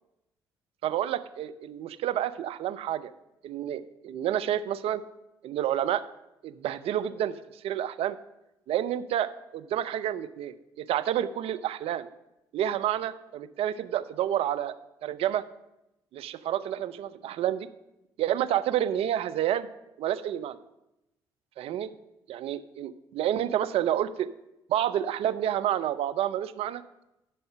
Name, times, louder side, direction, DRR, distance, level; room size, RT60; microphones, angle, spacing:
voice 1, 0.8-3.1 3.4-5.0 5.4-6.0 6.4-7.3 7.6-8.2 8.7-12.1 12.5-14.7 15.0-15.4 16.1-17.7 18.2-19.7 20.0-20.6 21.6-21.9 22.3-24.3 24.7-26.8, right 11 dB, 65° right, 12 dB, 0.6 m, -29 dB
11.0 x 5.5 x 5.6 m, 0.89 s
hypercardioid pair, 50°, 11 cm